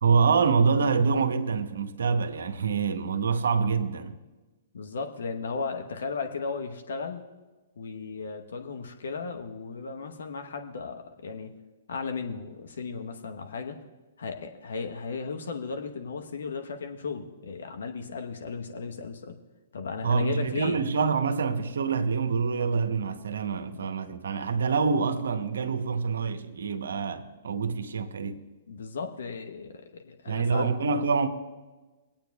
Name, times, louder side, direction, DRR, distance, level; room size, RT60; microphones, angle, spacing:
voice 1, 0.0-4.1 20.0-28.4 30.3-31.3, right 5 dB, 75° right, 0.8 m, -26 dB
voice 2, 4.7-7.2 7.8-11.5 11.9-13.8 14.2-19.4 19.7-20.8 23.7-23.9 28.7-30.7, left 4 dB, 70° left, 1.0 m, -35 dB
24.0 x 8.7 x 2.3 m
hypercardioid pair, 120°, 0 cm